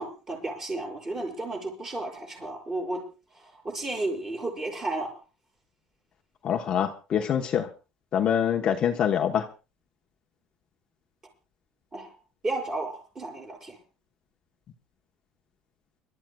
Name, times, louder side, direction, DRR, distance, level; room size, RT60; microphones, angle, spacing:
voice 1, 0.0-3.0 3.3-5.1 11.9-12.1 12.4-13.8, right 2 dB, 20° right, 1 dB, 6.6 m, -33 dB
voice 2, 6.4-7.7 8.1-9.5, left 8 dB, 35° left, 3 dB, 1.0 m, -25 dB
29.5 x 13.5 x 2.3 m, 0.33 s
cardioid pair, 150°, 3 cm